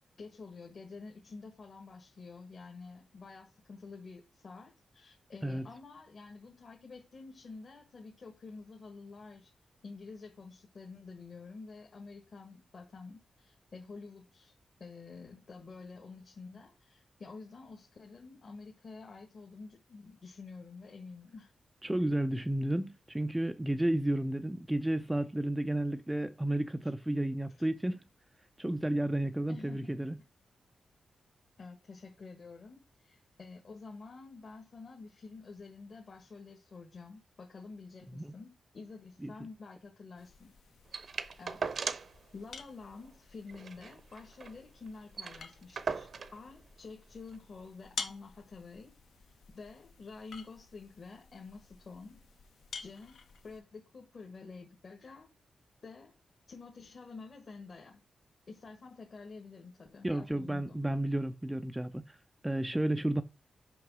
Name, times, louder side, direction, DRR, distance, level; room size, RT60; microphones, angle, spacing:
voice 1, 0.2-9.5 9.8-14.5 14.8-21.5 26.8-26.9 27.5-27.7 29.5-29.9 31.6-40.5 41.4-41.8 42.3-48.9 49.5-52.2 52.8-55.3 55.8-56.1 56.5-58.0 58.5-60.8, left 4 dB, 45° left, 1.4 m, -49 dB
voice 2, 21.8-28.0 28.6-30.2 38.2-38.3 39.2-39.3 60.0-62.2 62.4-63.2, right 1 dB, 10° right, 0.4 m, -32 dB
sound 1, 40.2-53.6, left 5 dB, 80° left, 1.1 m, -49 dB
sound 2, 40.9-42.2 42.5-42.6 42.9-43.1 43.5-44.6 44.9-45.0 45.1-46.4 47.3-47.4, right 5 dB, 50° right, 0.7 m, -38 dB
6.2 x 5.5 x 6.0 m
wide cardioid pair, 145°, 0 cm